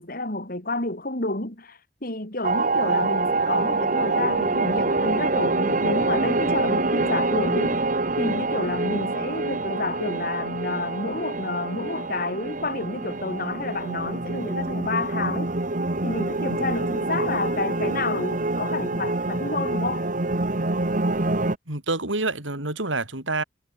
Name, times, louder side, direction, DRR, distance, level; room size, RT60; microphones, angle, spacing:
voice 1, 0.0-7.8 8.2-15.5 16.0-20.1, left 2 dB, 50° left, 4.7 m, -29 dB
sound 1, 2.4-21.6, right 2 dB, 40° right, 1.3 m, -26 dB
voice 2, 21.7-23.4, right 2 dB, 80° right, 5.3 m, -27 dB
head